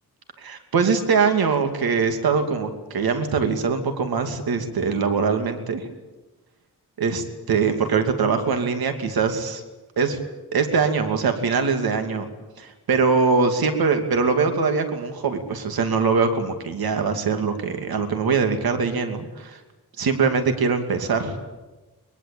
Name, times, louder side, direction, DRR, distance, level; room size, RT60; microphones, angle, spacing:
voice 1, 0.4-5.9 7.0-9.6 10.0-10.2 10.5-12.3 12.6-19.6 20.0-21.3, right 5 dB, 80° right, 7 dB, 2.7 m, -22 dB
22.5 x 22.0 x 8.6 m, 1.2 s
wide cardioid pair, 115°, 36 cm